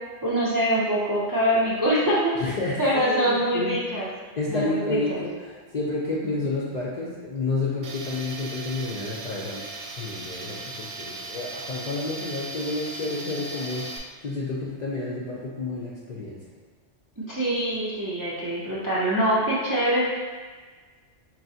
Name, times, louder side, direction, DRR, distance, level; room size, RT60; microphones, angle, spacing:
voice 1, 0.2-2.4 2.8-4.1 4.5-5.2 6.4-6.5 17.2-20.1, equal, 30° right, -7 dB, 0.3 m, -24 dB
voice 2, 2.4-3.8 4.4-9.7 10.0-16.4, left 2 dB, 55° left, -6 dB, 0.5 m, -30 dB
Tools, 7.8-14.0, right 2 dB, 85° right, 0.9 m, -37 dB
4.7 x 3.0 x 2.7 m, 1.5 s
omnidirectional pair, 1.2 m